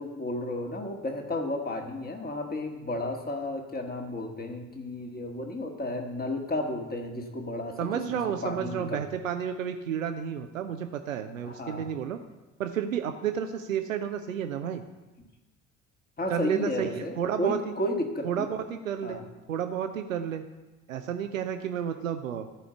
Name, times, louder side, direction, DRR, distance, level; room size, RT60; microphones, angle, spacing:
voice 1, 0.0-9.0 11.4-11.9 16.2-18.5 19.0-19.2, left 1 dB, 25° left, 3 dB, 1.8 m, -33 dB
voice 2, 7.8-12.2 12.6-14.8 16.3-17.6 18.2-20.4 20.9-22.5, right 8 dB, 85° right, 7 dB, 0.5 m, -31 dB
13.0 x 4.9 x 6.9 m, 1.1 s
figure-of-eight pair, 50°, 38 cm